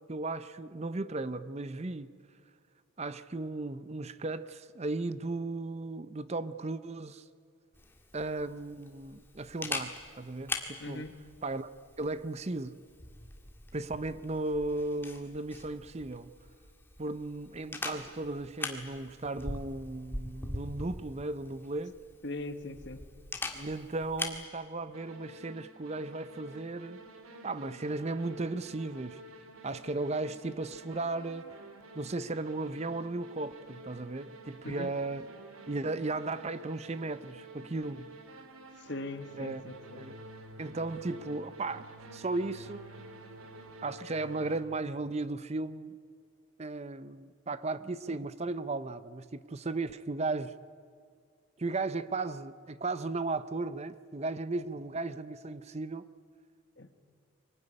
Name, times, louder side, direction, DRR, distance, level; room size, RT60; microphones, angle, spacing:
voice 1, 0.0-2.1 3.0-7.2 8.1-11.0 11.4-11.7 12.0-12.8 13.7-16.3 17.0-22.0 23.5-27.0 27.4-29.2 29.6-31.5 31.9-35.2 35.7-38.1 39.4-39.6 40.0-40.2 40.6-41.9 42.1-42.8 43.8-46.0 46.6-50.5 51.6-56.1, right 2 dB, 30° right, 0.6 m, -36 dB
Camera, 7.7-24.4, left 2 dB, 10° left, 1.9 m, -42 dB
voice 2, 10.8-11.2 22.2-23.1 34.6-34.9 38.8-40.1 56.8-56.9, left 2 dB, 55° left, 1.5 m, -40 dB
sound 1, 24.9-44.6, right 1 dB, 90° right, 2.3 m, -50 dB
24.0 x 19.0 x 9.8 m
head